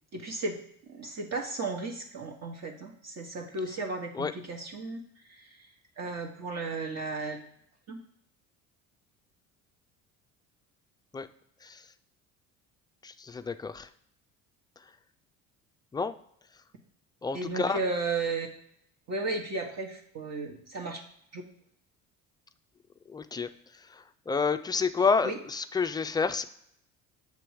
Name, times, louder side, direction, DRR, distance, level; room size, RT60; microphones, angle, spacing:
voice 1, 0.1-0.6 0.9-5.6 6.0-7.4 7.9-8.0 17.3-18.5 19.1-21.0 21.3-21.4 25.2-25.3, right 3 dB, 45° right, 1 dB, 1.2 m, -34 dB
voice 2, 11.6-11.9 13.0-13.9 14.8-14.9 15.9-16.2 17.2-17.8 23.1-26.4, left 5 dB, 10° left, 9 dB, 0.3 m, -30 dB
7.0 x 3.0 x 4.8 m, 0.70 s
hypercardioid pair, 70°, 38 cm